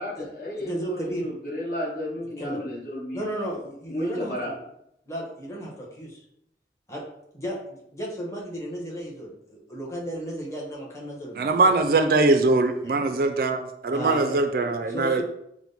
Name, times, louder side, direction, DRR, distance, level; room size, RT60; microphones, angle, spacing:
voice 1, 0.0-3.2 3.9-4.5, left 1 dB, 50° left, -4 dB, 1.3 m, -32 dB
voice 2, 0.7-1.3 2.4-2.6 3.1-4.6 5.1-6.2 6.9-7.0 7.3-11.9 12.8-13.0 13.9-14.4 14.9-15.2, right 1 dB, 15° left, -3 dB, 1.1 m, -34 dB
voice 3, 11.4-15.2, right 3 dB, 55° right, 7 dB, 0.4 m, -22 dB
5.9 x 2.1 x 4.0 m, 0.76 s
head